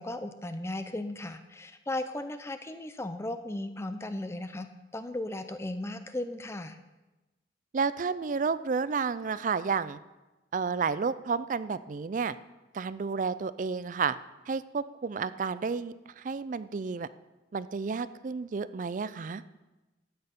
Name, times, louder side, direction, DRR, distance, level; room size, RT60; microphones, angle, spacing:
voice 1, 0.0-4.7 4.9-6.8, left 1 dB, 15° left, 9 dB, 0.5 m, -36 dB
voice 2, 7.7-10.0 10.5-12.4 12.7-14.2 14.5-17.1 17.5-19.4, right 5 dB, 45° right, 16 dB, 0.4 m, -31 dB
12.5 x 8.8 x 5.2 m, 1.1 s
head